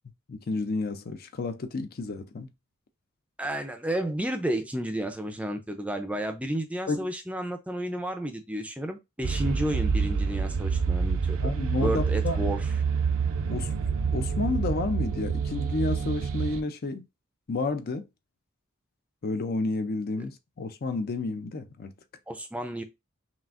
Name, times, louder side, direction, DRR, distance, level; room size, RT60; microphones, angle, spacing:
voice 1, 0.3-2.5 6.9-7.1 11.4-12.5 13.5-13.7 14.1-17.1 17.5-18.1 19.2-21.9, left 3 dB, 45° left, 0.5 m, -31 dB
voice 2, 3.4-11.5 11.8-12.7 22.3-22.8, right 1 dB, 5° right, 0.5 m, -32 dB
sound 1, 9.2-16.6, right 5 dB, 70° right, 0.5 m, -27 dB
5.8 x 2.4 x 2.5 m
head